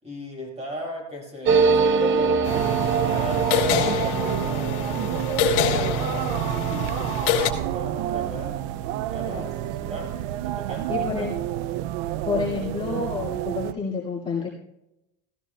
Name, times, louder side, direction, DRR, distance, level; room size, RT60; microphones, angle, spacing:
voice 1, 0.0-2.6 3.1-8.7 9.1-11.2, equal, 20° right, -1 dB, 5.1 m, -37 dB
sound 1, 1.4-10.6 10.9-11.0 11.2-11.8, right 4 dB, 35° right, 0.7 m, -27 dB
sound 2, 2.4-7.5, left 8 dB, 75° left, 1.8 m, -27 dB
sound 3, 2.5-13.7, right 13 dB, 85° right, 0.5 m, -29 dB
voice 2, 9.3-9.7 10.9-11.3 12.2-14.5, left 5 dB, 15° left, -7 dB, 2.1 m, -29 dB
16.5 x 14.0 x 2.3 m, 0.87 s
cardioid pair, 145°, 34 cm